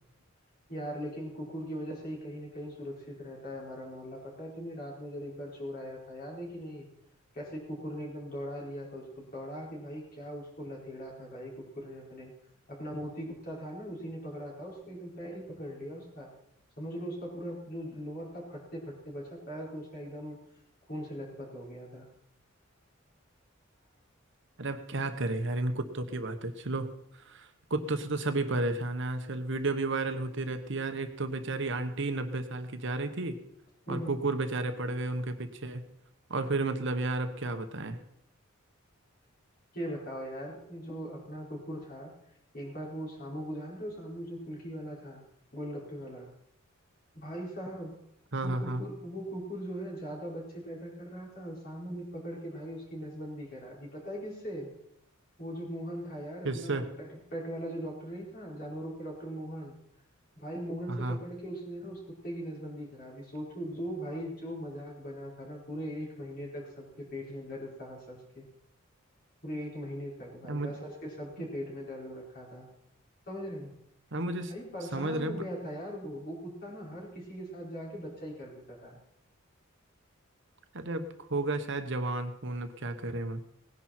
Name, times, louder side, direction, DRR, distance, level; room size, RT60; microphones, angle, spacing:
voice 1, 0.7-6.9 7.3-12.3 12.7-16.3 16.8-20.4 20.9-22.1 33.9-34.2 39.7-42.1 42.5-45.2 45.5-46.3 47.1-48.0 48.4-54.7 55.4-59.8 60.3-68.4 69.4-72.7 73.3-73.7 74.3-79.0, equal, 45° left, -3 dB, 5.2 m, -40 dB
voice 2, 24.6-26.9 27.2-33.4 33.9-35.8 36.3-38.0 48.3-48.8 56.4-56.9 60.9-61.2 70.5-70.7 74.1-74.5 74.9-75.4 80.7-83.4, right 2 dB, 60° right, 8 dB, 1.1 m, -32 dB
18.5 x 10.5 x 4.4 m, 0.74 s
head